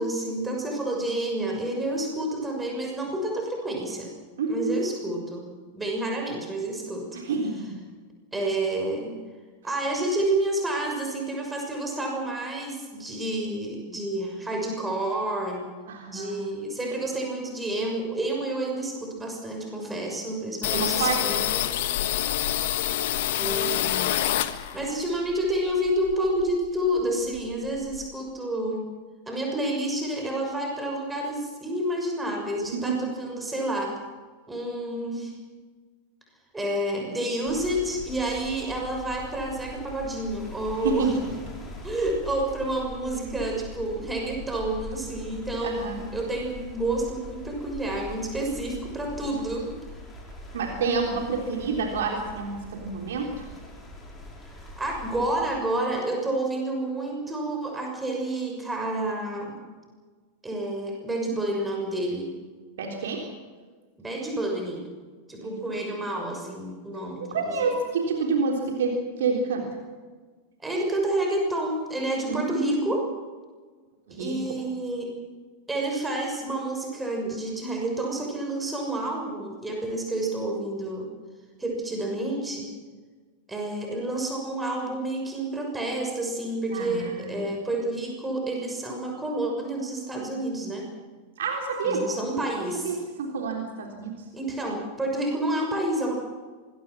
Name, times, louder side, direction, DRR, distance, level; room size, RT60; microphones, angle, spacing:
voice 1, 0.0-4.1 4.5-5.4 5.7-7.1 8.3-9.1 9.6-15.6 16.1-21.7 23.3-24.2 24.7-28.8 29.3-33.9 34.5-35.3 36.5-41.1 41.8-49.7 54.5-59.6 60.4-62.3 64.0-64.8 65.3-67.7 70.6-73.0 74.2-75.1 75.7-81.1 81.6-82.7 83.5-90.8 91.8-93.0 94.3-96.2, right 1 dB, 10° right, 1 dB, 6.3 m, -29 dB
voice 2, 4.4-4.8 7.1-7.7 15.9-16.4 20.7-21.3 32.9-33.0 40.8-41.2 45.6-46.0 50.5-53.5 62.8-63.3 65.4-65.8 67.2-69.7 72.3-72.9 74.1-74.4 86.7-87.4 91.4-92.1 92.8-94.2, right 4 dB, 60° right, 1 dB, 3.7 m, -28 dB
sound 1, 20.6-25.0 25.3-26.7 27.0-27.1 27.3-28.1, left 13 dB, 55° left, 1.4 m, -27 dB
sound 2, 37.5-55.5, left 1 dB, 10° left, 6.4 m, -42 dB
25.5 x 21.5 x 6.3 m, 1.4 s
figure-of-eight pair, 90°, 0 cm